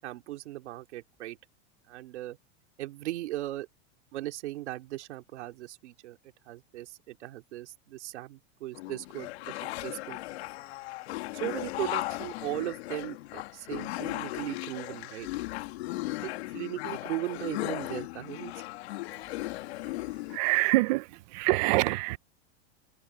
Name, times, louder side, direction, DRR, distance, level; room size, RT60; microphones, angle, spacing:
voice 1, 0.0-1.4 1.9-2.4 2.8-3.7 4.1-6.2 6.5-10.2 11.3-15.3 16.2-18.5, right 16 dB, 85° right, 2.7 m, -38 dB
sound 1, 8.7-20.4, left 18 dB, 65° left, 2.2 m, -37 dB
voice 2, 20.3-22.2, right 21 dB, 40° right, 0.5 m, -25 dB
supercardioid pair, 165°, 33 cm